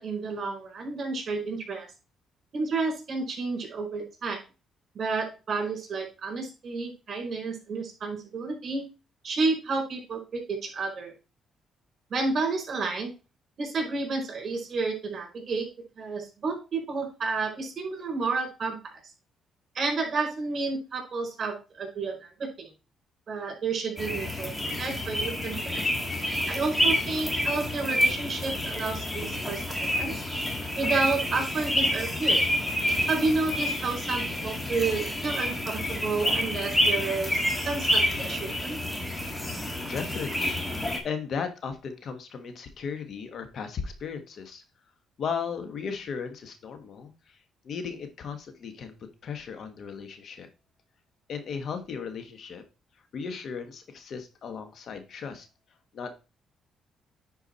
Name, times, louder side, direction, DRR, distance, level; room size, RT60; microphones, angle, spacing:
voice 1, 0.0-1.9 2.5-4.4 4.9-8.8 9.2-11.1 12.1-13.1 13.6-15.7 16.0-18.8 19.7-22.7 23.3-25.8 26.5-30.1 30.8-32.4 33.1-38.8, right 3 dB, 50° right, 2 dB, 4.5 m, -31 dB
sound 1, 24.0-41.0, left 1 dB, 15° left, 2.0 m, -28 dB
voice 2, 39.8-44.6 45.2-47.4 47.6-50.5 51.3-52.6 53.1-55.5 55.9-56.1, left 6 dB, 60° left, 7 dB, 1.5 m, -36 dB
9.8 x 4.6 x 4.3 m, 0.30 s
cardioid pair, 90°, 0 cm